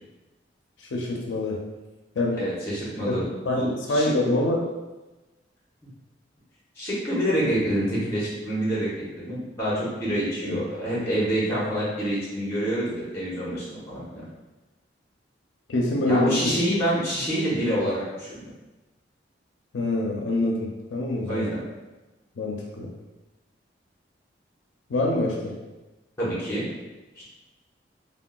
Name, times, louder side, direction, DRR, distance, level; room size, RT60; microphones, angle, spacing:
voice 1, 0.8-1.6 2.2-2.4 3.1-3.2 3.5-4.7 10.4-10.6 15.7-16.5 19.7-21.5 22.4-22.9 24.9-25.5, left 2 dB, 90° left, -1 dB, 0.4 m, -25 dB
voice 2, 2.4-3.2 3.5-4.1 6.8-8.9 9.1-14.3 16.1-18.4 21.3-21.6 26.2-26.7 27.2-27.3, equal, 15° left, -8 dB, 0.8 m, -27 dB
3.7 x 2.0 x 2.2 m, 1.1 s
head